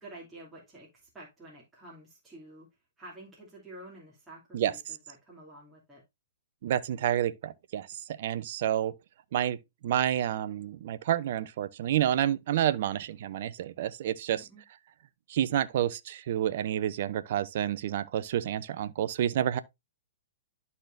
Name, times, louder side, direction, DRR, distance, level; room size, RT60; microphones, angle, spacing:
voice 1, 0.0-2.7 3.0-6.0 14.3-14.6, right 1 dB, 10° right, 2.7 m, -49 dB
voice 2, 6.6-8.9 9.3-9.6 9.8-14.5 15.3-19.6, right 11 dB, 55° right, 0.6 m, -29 dB
12.0 x 4.2 x 2.6 m
hypercardioid pair, 135°, 0 cm